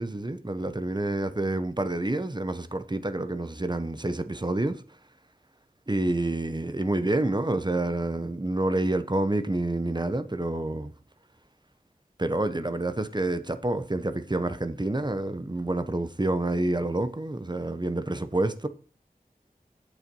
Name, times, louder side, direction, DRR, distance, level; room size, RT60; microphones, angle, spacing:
voice 1, 0.0-4.8 5.9-10.9 12.2-18.7, right 2 dB, 30° right, 0.9 m, -28 dB
8.3 x 7.0 x 5.4 m
wide cardioid pair, 40°, 16 cm